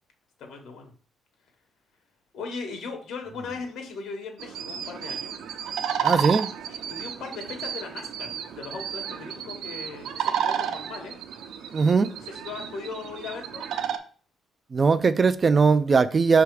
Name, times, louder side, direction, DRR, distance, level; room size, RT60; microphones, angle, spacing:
voice 1, 0.4-0.9 2.3-5.3 6.7-11.2 12.2-13.7, left 4 dB, 75° left, 1.7 m, -38 dB
sound 1, 4.4-14.0, right 8 dB, 80° right, 0.6 m, -32 dB
voice 2, 6.0-6.5 11.7-12.1 14.7-16.4, right 5 dB, 25° right, 0.4 m, -20 dB
5.9 x 3.4 x 4.7 m
cardioid pair, 165°, 0 cm